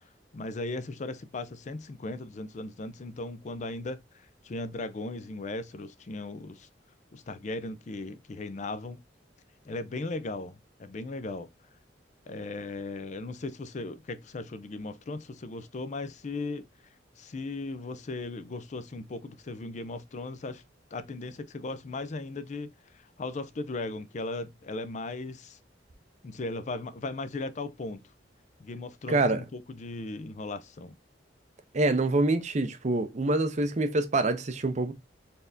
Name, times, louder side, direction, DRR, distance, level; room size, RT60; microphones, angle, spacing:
voice 1, 0.3-6.7 7.1-9.0 9.6-11.5 12.3-16.6 17.2-20.6 20.9-22.7 22.9-25.6 26.2-28.0 28.6-30.9, left 2 dB, 40° left, 0.4 m, -37 dB
voice 2, 29.1-29.4 31.7-34.9, right 2 dB, 40° right, 0.6 m, -26 dB
4.2 x 3.4 x 2.5 m
head